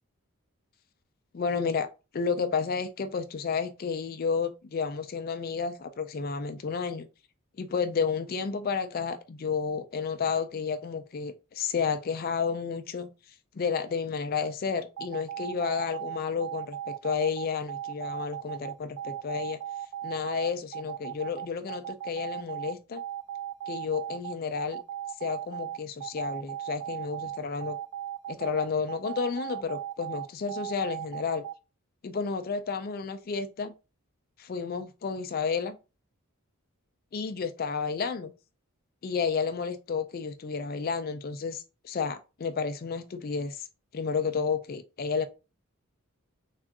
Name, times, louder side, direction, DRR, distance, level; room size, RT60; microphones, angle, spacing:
voice 1, 1.3-1.9 2.1-7.1 7.6-13.1 13.5-19.6 20.0-23.0 23.7-24.8 25.2-27.8 28.3-31.4 32.0-33.7 34.4-35.8 37.1-38.3 39.0-43.7 43.9-45.3, left 5 dB, 40° left, 0.3 m, -31 dB
sound 1, 15.0-31.5, right 11 dB, 80° right, 0.3 m, -37 dB
3.6 x 2.4 x 3.4 m
head